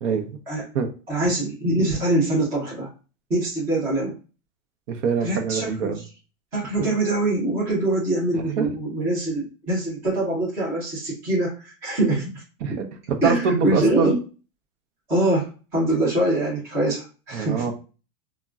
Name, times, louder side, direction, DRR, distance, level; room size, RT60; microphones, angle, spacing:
voice 1, 0.0-0.4 0.7-0.9 4.9-6.0 8.6-8.7 12.6-12.9 13.2-14.1 17.3-17.7, right 5 dB, 60° right, 6 dB, 0.7 m, -24 dB
voice 2, 1.1-2.9 3.3-4.2 5.2-6.0 6.5-12.4 13.2-14.2 15.1-17.7, right 1 dB, 5° right, -7 dB, 0.3 m, -24 dB
3.6 x 2.1 x 2.2 m, 0.34 s
supercardioid pair, 165°, 40 cm